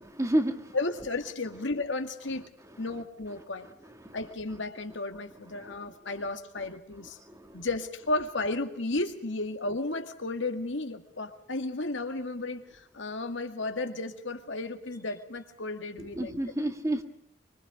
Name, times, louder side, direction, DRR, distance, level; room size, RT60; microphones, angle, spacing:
voice 1, 0.1-0.6 3.3-3.4 3.8-4.2 16.0-17.0, right 1 dB, 15° right, 7 dB, 1.7 m, -29 dB
voice 2, 0.7-2.5 2.8-3.7 4.1-7.2 7.5-16.4, left 2 dB, 80° left, 6 dB, 2.1 m, -33 dB
25.0 x 23.5 x 5.1 m, 0.69 s
head